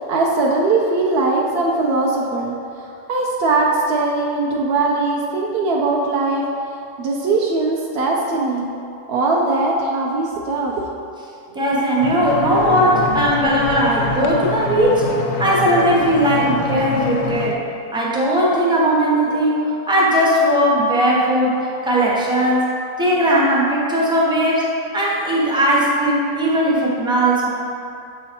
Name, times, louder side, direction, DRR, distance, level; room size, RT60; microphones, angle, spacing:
voice 1, 0.0-6.4 7.0-8.7 9.1-10.8 11.5-11.6, right 3 dB, 65° right, -2 dB, 0.6 m, -20 dB
voice 2, 11.5-17.6 17.9-24.7 24.9-27.5, right 1 dB, 5° right, -4 dB, 0.5 m, -18 dB
sound 1, 12.0-17.5, left 3 dB, 65° left, 0.7 m, -25 dB
6.5 x 3.9 x 4.3 m, 2.5 s
omnidirectional pair, 1.6 m